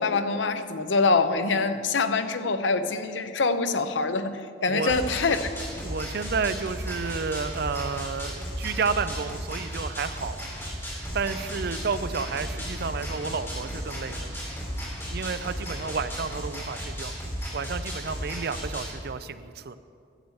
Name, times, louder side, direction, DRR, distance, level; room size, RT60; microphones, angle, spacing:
voice 1, 0.0-5.8, left 4 dB, 85° left, 10 dB, 0.7 m, -25 dB
sound 1, 4.9-18.9, equal, 15° left, 3.4 m, -35 dB
voice 2, 5.8-10.5 11.1-14.4 15.1-17.1 17.5-19.8, right 5 dB, 60° right, 12 dB, 0.5 m, -31 dB
sound 2, 11.0-17.2, equal, 5° right, 2.6 m, -45 dB
12.0 x 7.8 x 7.1 m, 2.4 s
head